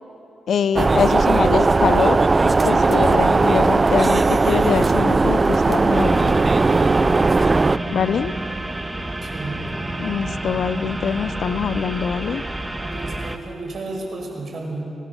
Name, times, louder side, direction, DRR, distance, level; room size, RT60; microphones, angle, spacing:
voice 1, 0.5-6.4 7.9-8.3 10.0-12.4, left 7 dB, 75° left, 14 dB, 0.6 m, -24 dB
sound 1, 0.8-7.8, right 3 dB, 35° right, 0.4 m, -17 dB
sound 2, 5.9-13.4, right 1 dB, 15° right, 1.5 m, -28 dB
voice 2, 9.3-9.6 12.8-14.8, right 2 dB, 55° right, 0 dB, 5.8 m, -32 dB
22.5 x 18.5 x 7.0 m, 2.8 s
cardioid pair, 75°, 0 cm